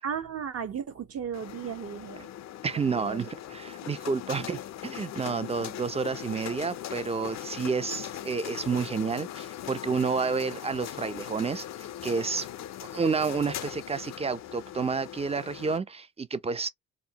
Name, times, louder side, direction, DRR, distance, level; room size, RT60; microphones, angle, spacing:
voice 1, 0.0-2.3 2.9-3.3 4.5-4.6, right 7 dB, 50° right, 0.7 m, -35 dB
sound 1, 1.3-15.8, left 12 dB, 60° left, 0.4 m, -40 dB
voice 2, 2.6-12.5 12.8-16.7, right 5 dB, 20° right, 0.4 m, -30 dB
2.5 x 2.0 x 2.8 m
supercardioid pair, 65°, 32 cm